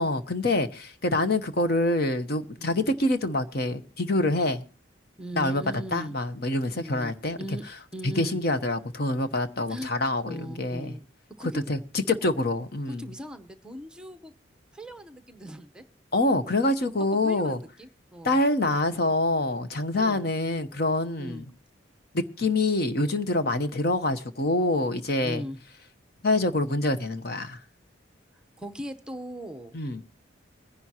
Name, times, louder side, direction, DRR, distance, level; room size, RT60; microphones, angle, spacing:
voice 1, 0.0-4.6 5.4-5.6 5.9-7.4 8.2-10.9 11.5-13.1 16.1-17.6 18.2-21.4 22.1-25.4 26.2-27.6 29.7-30.0, left 2 dB, 55° left, 1.0 m, -26 dB
voice 2, 2.5-3.0 5.2-6.2 6.7-7.7 7.9-8.4 9.7-9.9 10.3-11.1 11.4-11.7 12.9-14.3 14.7-15.8 16.9-18.4 19.9-20.3 21.2-21.4 25.2-25.6 28.6-29.8, equal, 5° right, 0.8 m, -39 dB
21.5 x 11.0 x 2.8 m
head